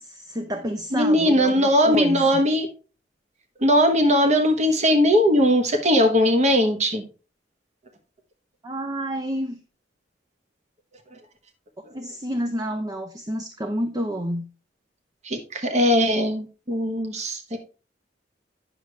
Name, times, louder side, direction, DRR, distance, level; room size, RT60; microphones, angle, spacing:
voice 1, 0.0-2.2 8.6-9.6 11.9-14.4, equal, 20° right, 0.6 m, -29 dB
voice 2, 0.9-2.7 3.6-7.0 15.2-17.6, equal, 40° right, 1.1 m, -19 dB
9.9 x 6.3 x 3.3 m
head